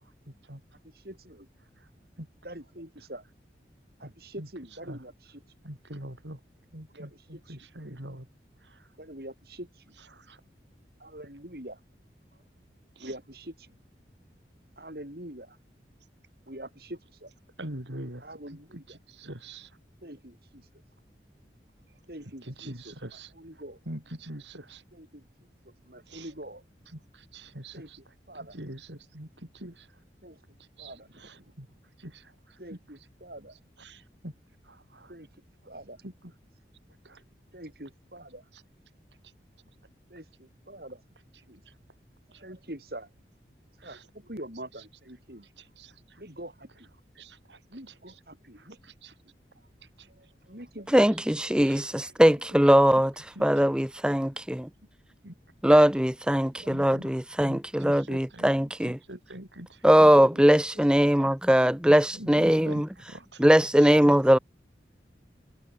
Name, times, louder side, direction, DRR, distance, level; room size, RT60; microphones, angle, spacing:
voice 1, 0.9-1.5 2.4-3.2 4.0-5.4 6.9-7.6 9.0-9.9 11.0-11.8 13.0-13.7 14.8-15.6 16.5-17.3 18.2-19.0 20.0-20.7 22.1-23.8 24.9-25.3 25.6-26.6 27.7-27.9 28.3-28.6 30.2-30.4 30.8-31.4 32.6-33.5 35.1-35.3 35.7-36.0 37.5-38.4 40.1-41.0 41.5-41.6 42.4-43.1 43.8-45.5 46.2-46.9 47.7-48.8 50.1-50.9 54.3-54.4 56.4-56.8 58.3-58.5 60.7-60.9, right 1 dB, 60° right, 6.4 m, -44 dB
voice 2, 5.6-6.4 6.7-8.3 10.1-10.4 13.0-13.1 17.6-18.3 18.7-18.8 19.1-19.7 22.5-23.3 23.9-24.8 26.1-26.3 26.9-28.0 28.5-29.3 29.5-29.9 30.8-30.9 31.2-31.7 32.0-32.2 32.7-32.8 33.8-34.3 34.7-35.1 36.0-36.1 37.1-37.2 43.8-44.0 45.8-45.9 47.2-47.6 48.8-49.1 50.0-50.1 51.6-51.8 55.2-55.3 56.7-57.1 57.4-58.5 58.8-60.1 61.9-63.5, right 1 dB, 85° right, 6.9 m, -43 dB
voice 3, 50.9-54.7 55.6-59.0 59.8-62.9 63.4-64.4, equal, 5° right, 0.7 m, -21 dB
head